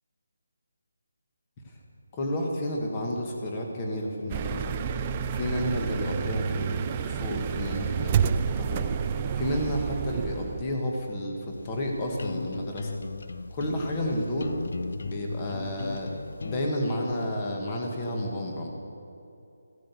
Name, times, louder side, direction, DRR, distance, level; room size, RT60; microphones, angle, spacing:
voice 1, 2.1-4.7 5.3-8.9 9.3-12.9 13.5-14.5 15.0-16.1 16.4-18.7, equal, 15° left, 1 dB, 1.5 m, -31 dB
sound 1, 4.3-10.8, right 7 dB, 15° right, 0.3 m, -29 dB
sound 2, 11.5-16.7, left 3 dB, 55° left, 0.6 m, -36 dB
15.0 x 10.0 x 8.2 m, 2.7 s
hypercardioid pair, 175°, 0 cm